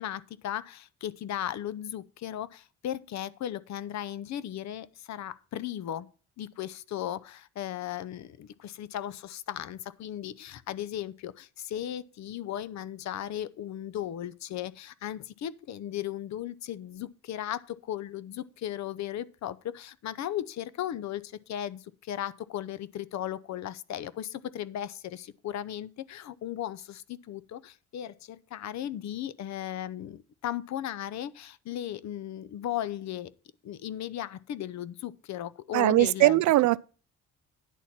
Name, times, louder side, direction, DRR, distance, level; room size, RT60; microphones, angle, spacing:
voice 1, 0.0-6.1 6.4-33.3 33.6-36.4, left 11 dB, 65° left, 0.7 m, -36 dB
voice 2, 35.7-36.8, right 17 dB, 70° right, 0.5 m, -21 dB
10.0 x 4.2 x 7.4 m
cardioid pair, 90°, 30 cm